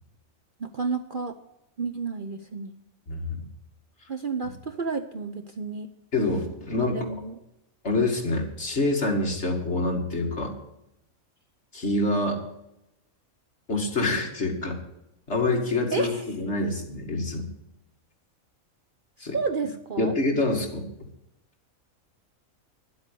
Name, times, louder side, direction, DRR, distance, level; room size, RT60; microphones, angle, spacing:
voice 1, 0.6-1.4 1.8-2.8 4.1-5.9 6.8-7.4 15.9-16.2 19.2-20.2, right 4 dB, 45° right, 6 dB, 0.8 m, -31 dB
voice 2, 3.1-3.4 6.1-7.1 7.8-10.5 11.7-12.4 13.7-14.8 15.3-17.5 19.2-19.4 20.0-20.9, left 2 dB, 55° left, 1 dB, 2.5 m, -26 dB
11.5 x 8.1 x 8.3 m, 0.85 s
omnidirectional pair, 1.4 m